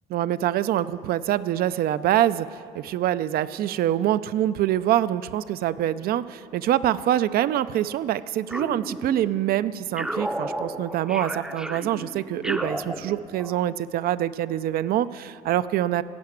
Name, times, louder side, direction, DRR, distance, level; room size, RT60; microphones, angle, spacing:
voice 1, 0.1-16.0, right 12 dB, 65° right, 15 dB, 0.4 m, -25 dB
sound 1, 8.5-9.5 10.0-13.6, right 1 dB, 5° right, 0.6 m, -33 dB
15.5 x 5.7 x 8.7 m, 2.3 s
cardioid pair, 110°, 17 cm